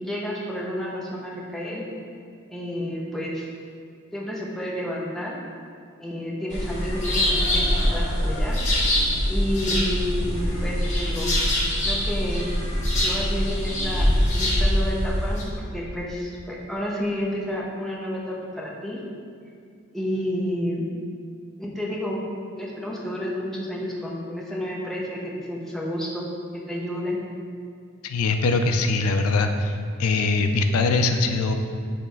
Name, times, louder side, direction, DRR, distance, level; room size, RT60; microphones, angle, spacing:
voice 1, 0.0-1.8 2.5-3.5 4.1-5.4 6.0-8.6 9.3-11.3 11.8-12.5 13.0-19.0 19.9-20.9 21.6-22.2 22.6-26.3 26.5-27.2, equal, ahead, -4 dB, 0.7 m, -30 dB
sound 1, 6.5-15.4, equal, 35° left, 1.1 m, -23 dB
voice 2, 28.0-31.5, left 3 dB, 80° left, 6 dB, 0.4 m, -22 dB
6.4 x 3.2 x 4.5 m, 2.3 s
head